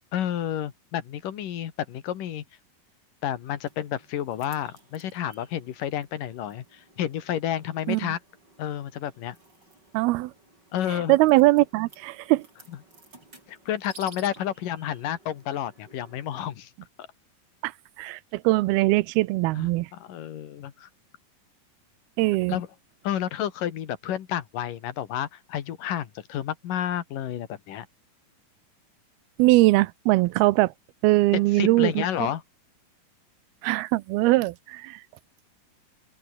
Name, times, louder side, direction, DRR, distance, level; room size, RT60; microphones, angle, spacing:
voice 1, 0.1-2.4 3.2-8.2 8.6-9.4 10.7-11.2 13.5-16.7 17.0-17.1 19.6-20.9 22.5-22.7 23.0-27.9 31.3-32.4, left 11 dB, 65° left, 3.2 m, -30 dB
sound 1, 3.7-16.5, right 2 dB, 25° right, 8.7 m, -54 dB
voice 2, 9.9-10.3 10.9-12.5 17.6-17.7 18.0-19.9 22.2-22.6 29.4-30.7 31.0-32.3 33.6-35.0, right 19 dB, 85° right, 2.6 m, -21 dB
open air
omnidirectional pair, 4.4 m